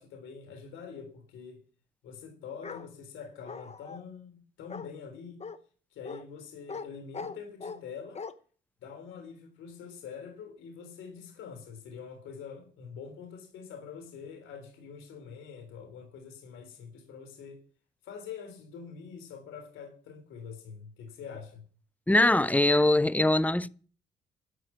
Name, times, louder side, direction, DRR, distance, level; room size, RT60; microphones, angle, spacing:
voice 1, 0.0-1.6 2.0-5.5 5.9-8.2 8.8-17.6 18.0-21.6, left 6 dB, 85° left, 3.7 m, -45 dB
Bark, 2.6-2.9 3.5-4.0 4.7-4.9 5.4-5.6 6.1-6.2 6.7-6.9 7.1-7.8 8.2-8.3, left 5 dB, 35° left, 1.0 m, -40 dB
voice 2, 22.1-23.7, left 1 dB, 5° left, 0.6 m, -22 dB
12.5 x 6.5 x 9.4 m
cardioid pair, 90°, 20 cm